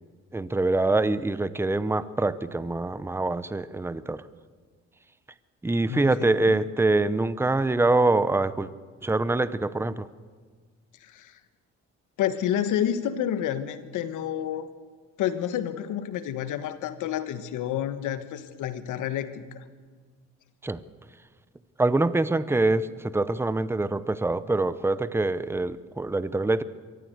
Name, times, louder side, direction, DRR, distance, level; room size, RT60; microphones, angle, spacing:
voice 1, 0.3-4.3 5.6-8.7 9.0-10.1 20.6-20.8 21.8-26.6, right 2 dB, 10° right, 15 dB, 0.7 m, -25 dB
voice 2, 5.9-6.6 11.0-11.4 12.2-14.7 15.2-19.6, left 10 dB, 85° left, 11 dB, 1.4 m, -29 dB
23.0 x 14.5 x 8.0 m, 1.5 s
cardioid pair, 90°, 30 cm